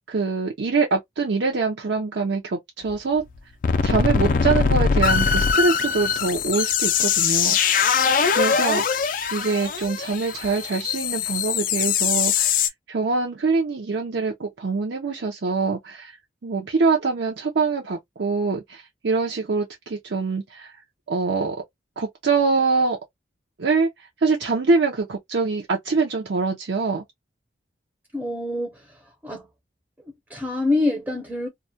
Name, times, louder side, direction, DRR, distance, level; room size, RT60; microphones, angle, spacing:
voice 1, 0.1-3.2 3.8-7.8 8.4-9.0 9.3-16.1 16.4-20.8 21.1-21.6 22.0-23.0 23.6-27.0, right 4 dB, 70° right, 0.5 m, -24 dB
sound 1, 2.9-3.0 3.3-3.4 3.6-12.7, left 6 dB, 45° left, 0.3 m, -22 dB
voice 2, 28.1-29.5 30.0-31.5, left 2 dB, 10° right, 0.5 m, -26 dB
2.2 x 2.1 x 2.6 m
head